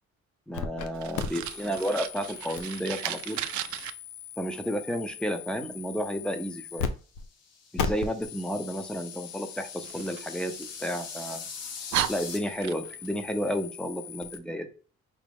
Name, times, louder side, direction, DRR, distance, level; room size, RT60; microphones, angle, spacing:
sound 1, 0.5-0.9 1.1-6.9 7.1-7.3 7.8-14.4, left 6 dB, 85° left, 0.6 m, -39 dB
voice 1, 0.5-3.4 4.4-6.9 7.7-11.4 12.1-14.7, equal, 5° left, 7 dB, 0.7 m, -32 dB
Fire, 0.9-3.9 9.8-11.1 11.5-11.6 11.9-13.1, right 13 dB, 70° right, 0.4 m, -35 dB
sound 2, 7.2-12.4, left 5 dB, 55° left, 0.9 m, -43 dB
5.0 x 2.2 x 3.5 m, 0.39 s
cardioid pair, 90°, 30 cm